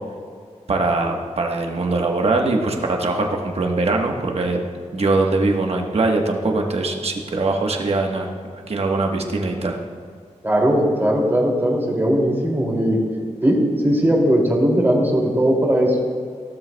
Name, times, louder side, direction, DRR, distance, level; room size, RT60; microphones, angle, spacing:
voice 1, 0.7-4.6 4.9-8.3 8.7-9.8, right 3 dB, 55° right, 2 dB, 1.3 m, -21 dB
voice 2, 10.4-13.0 13.4-13.6 13.8-16.0, equal, 15° right, -2 dB, 2.6 m, -18 dB
17.5 x 13.0 x 2.3 m, 2.1 s
wide cardioid pair, 125°, 13 cm